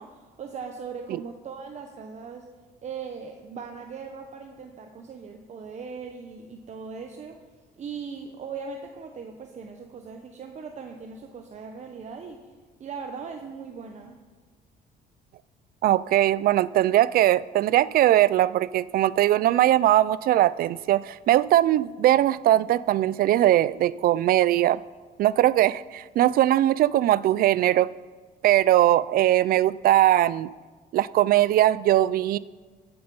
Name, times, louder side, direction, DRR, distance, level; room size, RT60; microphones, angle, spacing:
voice 1, 0.0-2.5 2.8-7.5 7.8-12.5 12.8-14.2, right 5 dB, 45° right, 4 dB, 1.1 m, -39 dB
voice 2, 15.8-24.8 25.2-27.9 28.4-30.5 30.9-32.4, right 13 dB, 60° right, 19 dB, 0.4 m, -20 dB
15.0 x 8.8 x 5.5 m, 1.4 s
cardioid pair, 110°, 17 cm